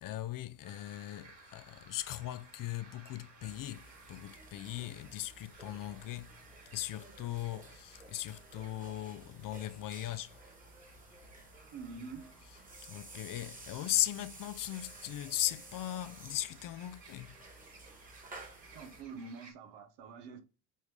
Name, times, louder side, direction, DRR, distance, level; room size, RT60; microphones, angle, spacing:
voice 1, 0.0-3.8 4.1-6.3 6.7-10.3 12.9-17.3, left 13 dB, 50° left, 0.5 m, -38 dB
sound 1, 0.6-19.5, right 3 dB, 50° right, 3.7 m, -59 dB
sound 2, 3.4-19.0, right 2 dB, 20° right, 1.7 m, -54 dB
voice 2, 11.7-12.3 18.7-20.4, right 4 dB, 75° right, 1.3 m, -46 dB
8.3 x 3.5 x 3.2 m
supercardioid pair, 90°, 44 cm